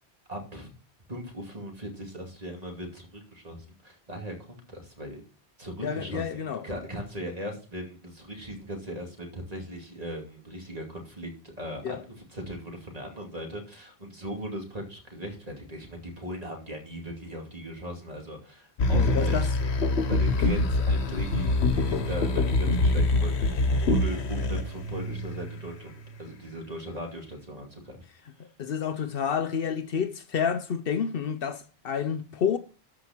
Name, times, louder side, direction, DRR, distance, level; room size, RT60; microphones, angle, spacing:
voice 1, 0.3-0.7 1.1-5.2 5.6-19.7 20.1-28.0, equal, 35° right, 2.7 m, -38 dB
voice 2, 5.8-6.6 11.8-12.0 18.9-19.5 28.6-32.6, left 7 dB, 65° left, 0.8 m, -29 dB
sound 1, 18.8-25.7 26.3-26.4, left 2 dB, 80° left, 1.3 m, -25 dB
13.0 x 5.0 x 4.4 m
omnidirectional pair, 1.1 m